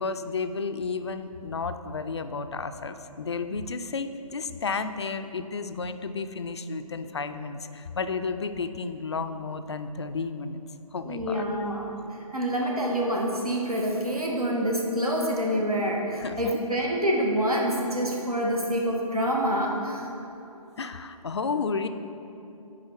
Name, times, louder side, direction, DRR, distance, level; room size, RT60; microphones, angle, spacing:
voice 1, 0.0-10.6 10.9-11.4 16.2-16.6 20.8-21.9, left 4 dB, 50° left, 9 dB, 0.4 m, -32 dB
voice 2, 11.0-11.9 12.3-20.1, equal, 80° right, -2 dB, 1.7 m, -27 dB
9.7 x 3.9 x 5.9 m, 2.9 s
figure-of-eight pair, 140°, 19 cm